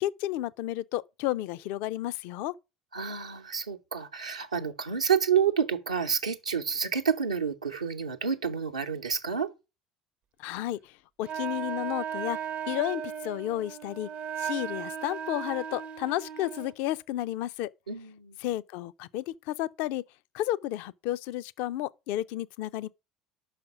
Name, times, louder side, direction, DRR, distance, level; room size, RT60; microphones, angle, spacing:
voice 1, 0.0-2.5 10.4-10.9 11.2-12.4 12.7-14.1 14.4-17.7 18.4-20.0 20.3-22.9, left 14 dB, 60° left, 0.4 m, -32 dB
voice 2, 2.9-9.5 17.9-18.4, right 7 dB, 85° right, 0.7 m, -29 dB
Wind instrument woodwind instrument, 11.2-16.8, right 8 dB, 40° right, 0.5 m, -36 dB
5.8 x 5.0 x 6.2 m
figure-of-eight pair, 65°, 3 cm